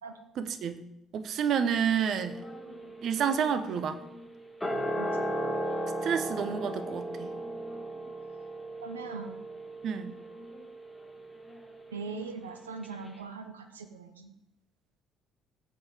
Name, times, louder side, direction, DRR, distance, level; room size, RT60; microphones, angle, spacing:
voice 1, 0.4-0.8 1.1-2.4 3.0-4.0 6.0-7.3 9.8-10.1, right 7 dB, 55° right, 10 dB, 1.0 m, -29 dB
sound 1, 2.2-12.5 12.8-12.9, right 1 dB, 10° left, 4.4 m, -37 dB
voice 2, 8.8-9.3 11.9-14.3, right 4 dB, 85° right, 7 dB, 0.7 m, -41 dB
17.0 x 8.2 x 3.6 m, 0.87 s
figure-of-eight pair, 50°, 0 cm